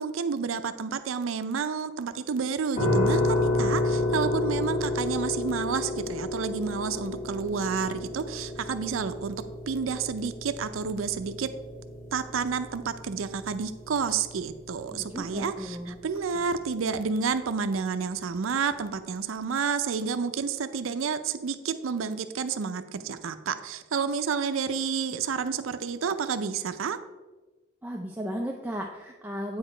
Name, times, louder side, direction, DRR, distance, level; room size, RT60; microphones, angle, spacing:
voice 1, 0.0-11.5 12.1-15.8 16.0-27.0, right 5 dB, 80° right, 10 dB, 0.5 m, -30 dB
sound 1, 2.8-15.6, left 2 dB, 40° left, 2.3 m, -31 dB
voice 2, 4.0-4.3 14.9-16.0 16.3-16.5 27.8-29.6, equal, 10° right, 1 dB, 0.4 m, -35 dB
8.7 x 4.8 x 4.4 m, 1.2 s
head